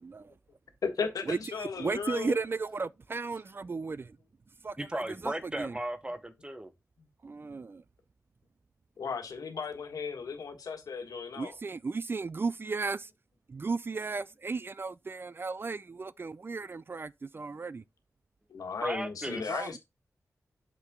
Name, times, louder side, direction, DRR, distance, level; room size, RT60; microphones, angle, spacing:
voice 1, 0.0-0.3 1.2-4.2 4.6-4.9 5.2-5.7 7.2-7.8 11.4-13.1 13.5-17.8 19.5-19.8, right 4 dB, 40° right, 0.3 m, -35 dB
voice 2, 0.8-2.4 9.0-11.5 18.5-19.8, left 5 dB, 90° left, 1.5 m, -35 dB
voice 3, 4.8-6.7 18.8-19.6, right 1 dB, 15° right, 0.8 m, -36 dB
5.9 x 5.7 x 3.6 m
wide cardioid pair, 85°, 6 cm